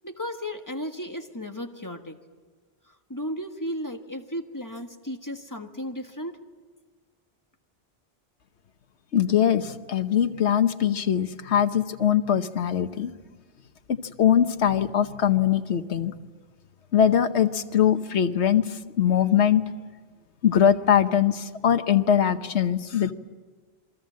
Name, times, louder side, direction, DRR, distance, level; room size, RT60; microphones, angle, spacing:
voice 1, 0.0-2.2 2.9-6.4, equal, 15° left, 4 dB, 1.5 m, -34 dB
voice 2, 9.1-13.1 13.9-16.1 16.9-19.6 20.4-23.1, left 9 dB, 90° left, 9 dB, 1.3 m, -22 dB
28.0 x 22.5 x 7.5 m, 1.4 s
omnidirectional pair, 1.1 m